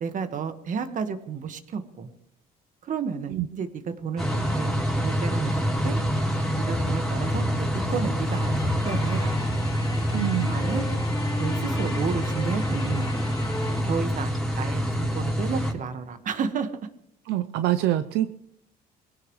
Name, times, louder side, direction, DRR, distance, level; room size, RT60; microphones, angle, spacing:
voice 1, 0.0-2.1 2.8-3.7 4.0-4.8 5.0-6.0 6.6-9.4 10.5-10.8 11.4-13.1 13.8-16.7, right 6 dB, 50° right, 8 dB, 1.7 m, -32 dB
sound 1, 4.2-15.7, equal, 5° left, 3.6 m, -26 dB
sound 2, 6.7-13.8, left 2 dB, 20° left, 1.8 m, -36 dB
voice 2, 10.1-10.6 17.3-18.4, right 13 dB, 80° right, 11 dB, 0.7 m, -25 dB
23.5 x 16.5 x 3.3 m, 0.71 s
cardioid pair, 110°, 17 cm